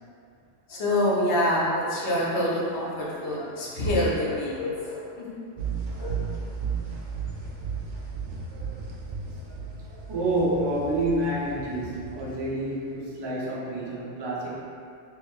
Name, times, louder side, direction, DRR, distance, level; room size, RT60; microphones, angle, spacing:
voice 1, 0.7-5.4 5.9-6.2, left 1 dB, 70° left, -5 dB, 1.1 m, -26 dB
sound 1, 5.6-13.0, right 5 dB, 85° right, 1.0 m, -35 dB
voice 2, 8.5-8.9 9.3-14.6, right 1 dB, 30° right, -6 dB, 0.5 m, -29 dB
3.1 x 3.0 x 3.5 m, 2.4 s
omnidirectional pair, 1.2 m